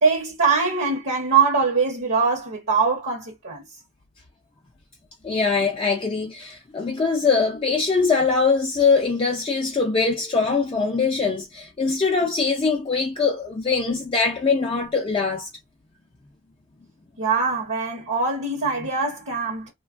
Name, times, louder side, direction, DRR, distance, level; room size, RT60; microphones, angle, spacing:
voice 1, 0.0-3.6 17.2-19.7, right 4 dB, 55° right, 0.8 m, -22 dB
voice 2, 5.2-15.5, left 4 dB, 25° left, 0.3 m, -22 dB
3.1 x 2.2 x 2.4 m
head